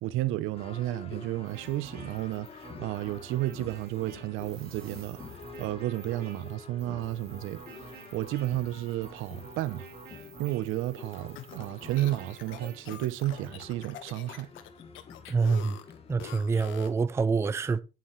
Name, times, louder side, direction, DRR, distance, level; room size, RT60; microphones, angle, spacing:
voice 1, 0.0-5.2 5.6-7.6 8.1-9.9 10.4-14.5, right 15 dB, 90° right, 0.9 m, -32 dB
sound 1, 0.5-16.3, left 5 dB, 30° left, 1.3 m, -49 dB
sound 2, 1.4-13.5, right 5 dB, 50° right, 3.1 m, -50 dB
sound 3, 11.1-17.0, left 11 dB, 75° left, 1.4 m, -46 dB
voice 2, 15.3-15.8 16.1-17.8, right 4 dB, 15° right, 0.4 m, -26 dB
9.4 x 9.4 x 3.2 m
cardioid pair, 160°, 20 cm